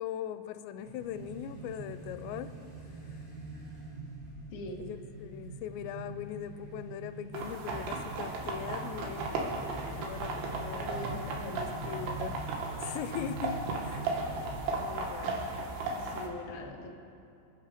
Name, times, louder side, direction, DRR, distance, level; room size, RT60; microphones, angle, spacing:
voice 1, 0.0-2.6 3.1-3.2 4.8-9.4 10.0-10.9 11.6-12.5 12.8-14.2 14.7-15.4, left 9 dB, 85° left, 11 dB, 2.9 m, -40 dB
sound 1, 0.8-15.0, right 2 dB, 40° right, 5.5 m, -44 dB
voice 2, 4.5-4.8 10.7-12.1 15.9-16.9, left 1 dB, 60° left, 0 dB, 1.4 m, -42 dB
sound 2, 7.3-16.3, right 3 dB, 75° right, 3.5 m, -36 dB
26.5 x 9.5 x 5.0 m, 2.6 s
omnidirectional pair, 5.0 m